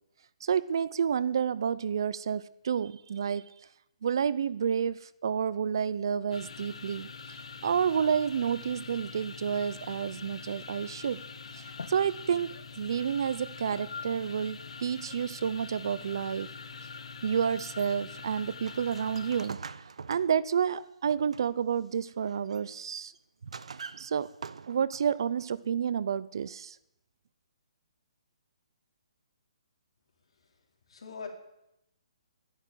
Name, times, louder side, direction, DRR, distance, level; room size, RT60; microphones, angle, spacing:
voice 1, 0.4-3.5 4.0-7.1 7.6-11.2 11.5-16.5 17.2-19.6 20.1-23.1 24.0-24.3 24.7-26.8, right 7 dB, 45° right, 0.5 m, -30 dB
sound 1, 6.3-19.5, left 5 dB, 85° left, 1.9 m, -44 dB
sound 2, 17.4-21.7 22.1-22.7 23.1-25.1, right 5 dB, 85° right, 0.8 m, -45 dB
voice 2, 30.3-31.3, left 5 dB, 60° left, 4.3 m, -45 dB
12.0 x 11.0 x 9.3 m
hypercardioid pair, 175°, 3 cm